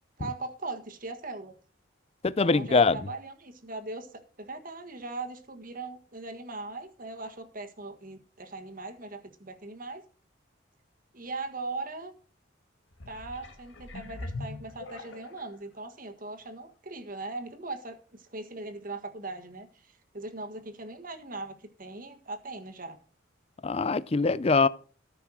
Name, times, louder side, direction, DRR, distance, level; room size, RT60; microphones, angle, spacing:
voice 1, 0.2-1.5 2.4-10.0 11.1-12.1 13.1-19.7 20.1-23.0, right 3 dB, 45° right, 1.6 m, -39 dB
voice 2, 2.2-3.0 23.6-24.7, left 4 dB, 30° left, 0.4 m, -23 dB
sound 1, 12.9-15.6 16.2-16.3, left 2 dB, 65° left, 1.7 m, -41 dB
13.5 x 5.9 x 6.3 m
head